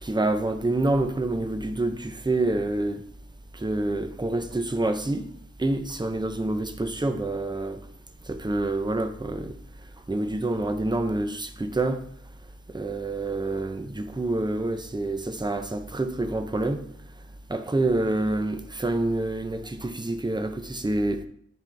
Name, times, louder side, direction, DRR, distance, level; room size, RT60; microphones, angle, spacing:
voice 1, 0.0-3.0 3.5-5.3 5.6-7.8 8.3-9.6 10.1-12.0 12.7-16.8 17.5-21.2, right 2 dB, 15° right, 0.7 m, -27 dB
10.5 x 3.8 x 3.4 m
wide cardioid pair, 60°, 29 cm